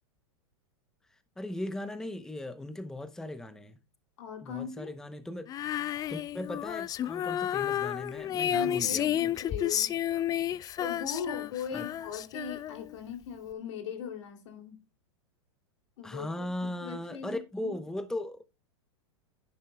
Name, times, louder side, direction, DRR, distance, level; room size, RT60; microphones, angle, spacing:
voice 1, 1.4-3.8 4.4-5.5 6.1-9.2 11.7-11.9 16.0-18.4, left 1 dB, 5° left, 0.7 m, -38 dB
voice 2, 4.2-4.9 8.5-9.9 10.8-14.8 16.0-17.7, left 6 dB, 70° left, 2.6 m, -39 dB
Female singing, 5.5-13.0, left 11 dB, 25° left, 0.4 m, -31 dB
11.0 x 9.7 x 2.2 m
hypercardioid pair, 105°, 16 cm